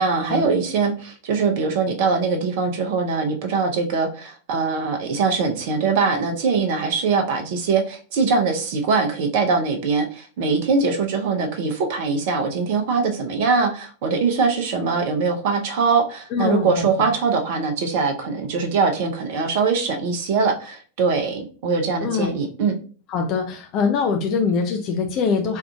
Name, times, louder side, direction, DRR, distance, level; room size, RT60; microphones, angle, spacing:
voice 1, 0.0-22.8, right 4 dB, 50° right, 6 dB, 0.6 m, -22 dB
voice 2, 16.3-17.1 22.0-22.3 23.1-25.6, left 5 dB, 40° left, 3 dB, 0.4 m, -23 dB
4.4 x 2.5 x 2.3 m, 0.38 s
figure-of-eight pair, 90°, 0 cm